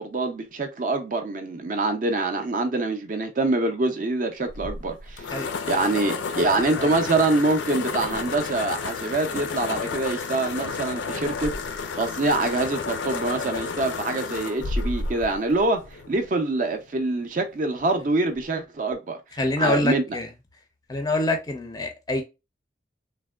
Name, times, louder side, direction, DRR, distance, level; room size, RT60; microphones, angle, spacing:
voice 1, 0.0-5.3 5.7-11.5 12.0-19.2 19.6-20.2, right 2 dB, 45° right, 0.4 m, -25 dB
sound 1, 4.5-16.3, left 4 dB, 80° left, 0.4 m, -31 dB
voice 2, 19.4-20.3 20.9-22.2, left 2 dB, 20° left, 0.4 m, -25 dB
3.3 x 2.1 x 2.2 m
head